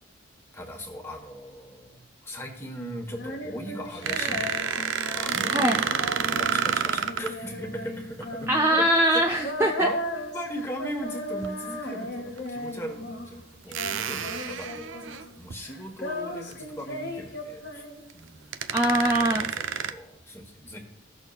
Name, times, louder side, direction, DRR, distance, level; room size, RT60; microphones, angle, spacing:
voice 1, 0.5-8.5 9.6-17.8 18.1-20.8, equal, 15° left, 2 dB, 1.2 m, -39 dB
Female singing, 3.1-13.4 13.7-15.4 15.6-18.3, left 1 dB, 55° left, 1.2 m, -36 dB
sound 1, 4.0-7.3 9.5-9.7 11.3-11.5 12.4-12.5 13.7-15.5 16.0-16.2 16.5-16.6 18.1-18.2 18.5-19.9, right 7 dB, 80° right, 0.5 m, -29 dB
voice 2, 5.5-5.8 8.5-9.9 18.7-19.5, right 1 dB, 10° right, 1 dB, 0.4 m, -22 dB
16.0 x 6.3 x 2.4 m, 0.78 s
head